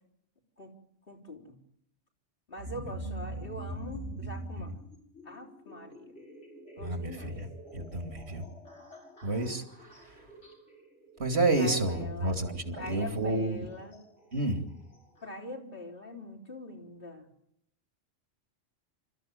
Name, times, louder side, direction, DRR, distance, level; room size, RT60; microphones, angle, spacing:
voice 1, 1.1-1.5 2.5-4.8 5.3-6.1 6.8-7.4 11.6-12.4 12.7-14.0 15.2-17.3, left 1 dB, 50° left, -2 dB, 4.2 m, -43 dB
sound 1, 2.6-15.3, right 1 dB, 75° left, 6.4 m, -45 dB
voice 2, 6.8-7.5 7.7-8.4 9.2-9.6 11.2-13.6 14.3-14.6, right 2 dB, 60° right, 7 dB, 3.0 m, -29 dB
27.5 x 14.0 x 9.3 m, 0.74 s
omnidirectional pair, 1.2 m